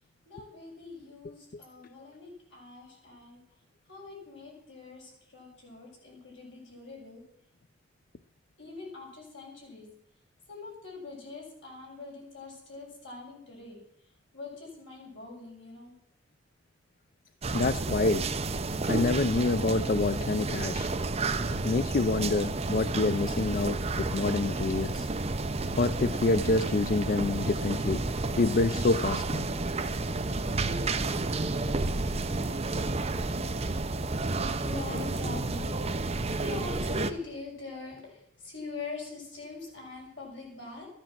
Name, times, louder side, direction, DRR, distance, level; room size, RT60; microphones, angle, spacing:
voice 1, 0.2-3.4 3.9-7.2 8.6-9.9 10.5-13.8 14.3-15.9 34.4-35.8 36.4-40.9, left 4 dB, 75° left, -2 dB, 6.3 m, -43 dB
sound 1, 17.4-37.1, right 3 dB, 35° right, 0.8 m, -31 dB
voice 2, 17.5-18.3 18.9-20.9 21.6-25.1 25.7-28.0 28.4-29.5, left 3 dB, 50° left, 13 dB, 0.5 m, -27 dB
14.0 x 10.5 x 7.4 m, 0.73 s
head